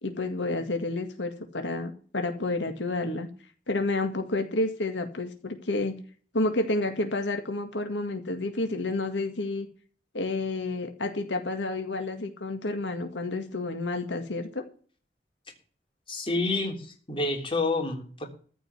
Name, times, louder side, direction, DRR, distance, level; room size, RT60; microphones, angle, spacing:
voice 1, 0.0-3.3 3.7-6.0 6.3-9.7 10.1-14.6, left 2 dB, 85° left, 6 dB, 1.9 m, -30 dB
voice 2, 16.1-18.3, left 2 dB, 30° left, 3 dB, 3.4 m, -29 dB
14.5 x 5.4 x 9.4 m, 0.43 s
head